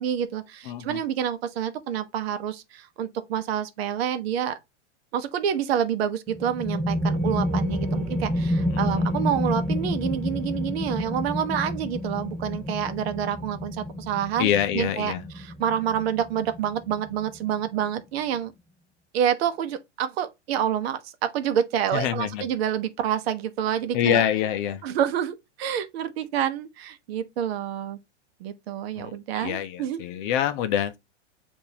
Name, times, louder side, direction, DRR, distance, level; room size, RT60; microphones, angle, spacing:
voice 1, 0.0-4.6 5.1-14.5 14.7-18.5 19.1-24.2 24.8-28.0 28.4-30.0, right 9 dB, 60° right, 0.8 m, -28 dB
voice 2, 0.7-1.0 8.7-8.8 14.4-15.2 21.9-22.4 23.9-24.8 29.0-31.0, left 10 dB, 45° left, 0.6 m, -26 dB
sound 1, 6.3-17.7, left 1 dB, ahead, 0.4 m, -29 dB
6.8 x 2.6 x 2.7 m
hypercardioid pair, 130°, 35 cm